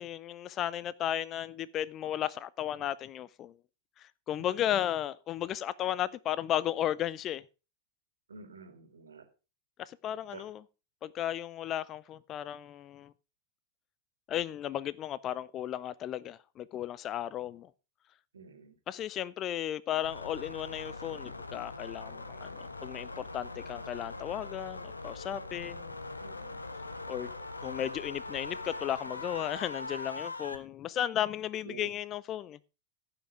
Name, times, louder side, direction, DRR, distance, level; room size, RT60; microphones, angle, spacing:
voice 1, 0.0-3.5 4.0-7.4 9.8-10.6 11.0-13.1 14.3-17.7 18.9-25.9 27.1-27.3 27.6-32.6, left 11 dB, 30° left, 0.4 m, -35 dB
voice 2, 8.3-9.3 10.3-10.4 18.3-18.7 26.2-26.6 31.6-31.9, right 5 dB, 70° right, 2.1 m, -49 dB
sound 1, 20.0-30.6, left 3 dB, 80° left, 1.0 m, -41 dB
15.0 x 5.8 x 4.8 m
figure-of-eight pair, 90°, 0 cm